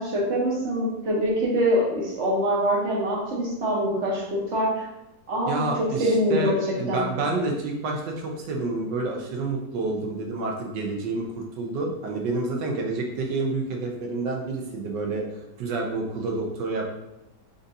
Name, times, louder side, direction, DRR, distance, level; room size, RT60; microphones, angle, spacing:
voice 1, 0.0-4.9 5.3-6.6 6.9-7.1, equal, 50° right, -3 dB, 1.2 m, -24 dB
voice 2, 5.5-15.2 15.6-17.0, right 2 dB, 90° right, 1 dB, 1.4 m, -29 dB
3.9 x 3.8 x 2.6 m, 0.90 s
omnidirectional pair, 1.8 m